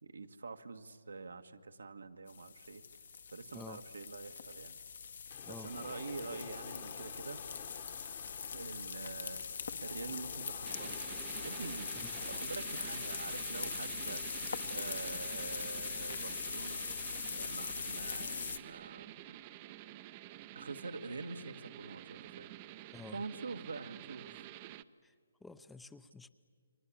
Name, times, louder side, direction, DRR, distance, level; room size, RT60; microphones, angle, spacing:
voice 1, 0.0-2.8 3.3-4.8 5.5-7.4 8.5-9.4 9.8-11.0 11.4-11.9 12.2-14.2 14.7-16.9 17.3-19.4 20.5-22.5 23.1-24.4, right 4 dB, 80° right, 7 dB, 1.5 m, -45 dB
sound 1, 2.3-18.6, left 6 dB, 65° left, 1.6 m, -42 dB
sound 2, 5.3-12.4, left 9 dB, 40° left, 1.4 m, -51 dB
sound 3, 10.6-24.8, right 14 dB, 30° right, 0.7 m, -49 dB
voice 2, 22.9-23.2 25.0-25.1 25.4-26.3, left 3 dB, 5° left, 12 dB, 0.7 m, -50 dB
30.0 x 23.5 x 8.6 m, 2.1 s
hypercardioid pair, 145°, 0 cm